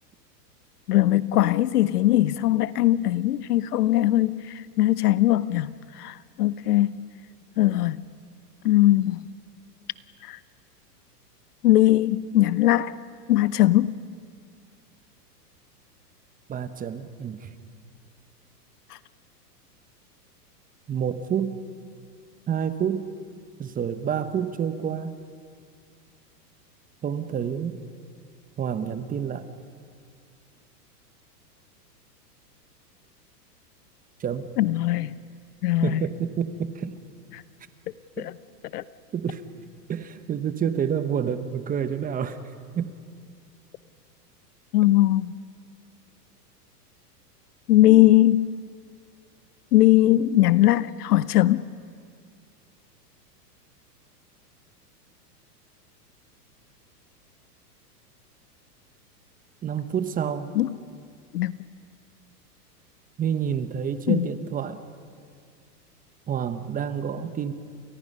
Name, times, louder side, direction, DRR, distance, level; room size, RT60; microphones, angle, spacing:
voice 1, 0.9-4.4 4.8-6.9 7.6-8.0 8.6-9.2 10.3-10.4 11.6-12.9 13.3-13.9 34.6-35.1 35.6-36.0 38.2-38.3 38.7-38.8 44.7-45.3 47.7-48.5 49.7-51.6 60.5-60.7 61.3-61.5 64.1-64.3, left 15 dB, 70° left, 1.0 m, -20 dB
voice 2, 16.5-17.5 20.9-21.6 22.5-23.1 23.6-25.2 27.0-27.8 28.6-29.5 34.2-34.5 35.8-37.0 38.2-38.3 39.1-39.4 39.9-42.4 42.7-42.9 59.6-60.5 63.2-64.8 66.3-67.5, right 8 dB, 15° right, 1.0 m, -28 dB
29.5 x 29.0 x 5.5 m
hypercardioid pair, 130°, 48 cm